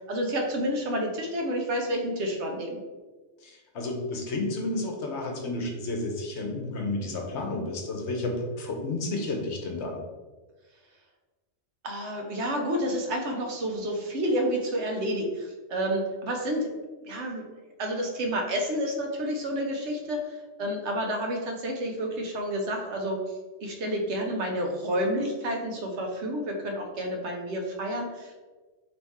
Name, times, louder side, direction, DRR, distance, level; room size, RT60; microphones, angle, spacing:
voice 1, 0.1-2.8 11.8-16.8 17.0-17.5 17.8-23.2 23.6-28.4, equal, 70° right, 1 dB, 1.0 m, -30 dB
voice 2, 3.4-10.0, left 2 dB, 70° left, 1 dB, 1.0 m, -31 dB
4.1 x 3.1 x 3.5 m, 1.3 s
omnidirectional pair, 1.2 m